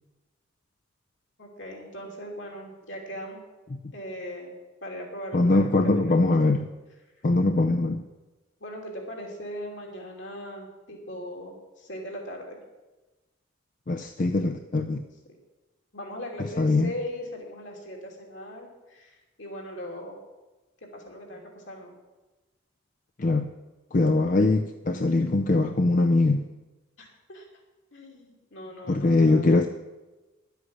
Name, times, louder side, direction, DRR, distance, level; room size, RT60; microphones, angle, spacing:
voice 1, 1.4-3.4 3.9-4.5 4.8-6.3 8.6-12.6 15.9-20.2 20.9-21.9 27.0-27.4 27.9-29.5, equal, 70° left, 0 dB, 2.9 m, -39 dB
voice 2, 5.3-6.7 7.2-8.0 13.9-15.0 16.6-16.9 23.2-23.5 23.9-26.5 28.9-29.7, left 2 dB, 40° left, 6 dB, 0.5 m, -22 dB
11.0 x 8.2 x 7.8 m, 1.1 s
head